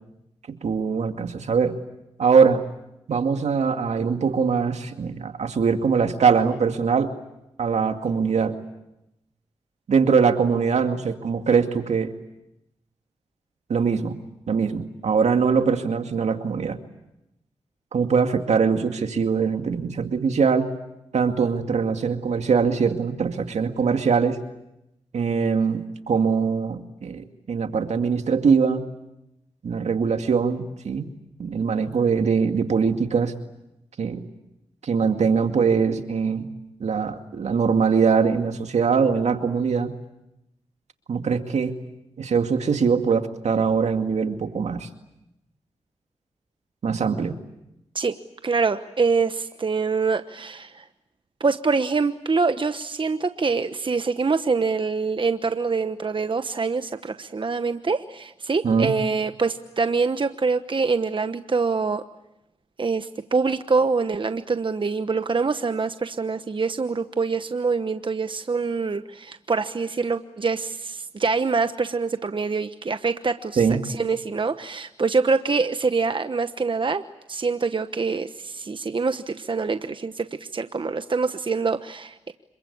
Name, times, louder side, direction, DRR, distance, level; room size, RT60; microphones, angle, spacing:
voice 1, 0.5-1.8 2.2-2.6 3.1-7.1 7.6-8.6 9.9-12.1 13.7-14.2 14.5-16.8 17.9-20.7 21.1-24.4 25.1-28.8 29.6-31.1 31.4-33.3 34.0-34.2 34.8-36.5 36.8-39.9 41.1-41.8 42.2-44.9 46.8-47.3 58.6-58.9 73.6-73.8, right 5 dB, 80° right, 6 dB, 2.2 m, -22 dB
voice 2, 48.4-50.8 51.4-62.0 62.8-77.0 77.3-82.3, right 4 dB, 45° right, 10 dB, 1.1 m, -25 dB
27.0 x 23.0 x 8.6 m, 0.87 s
cardioid pair, 45°, 11 cm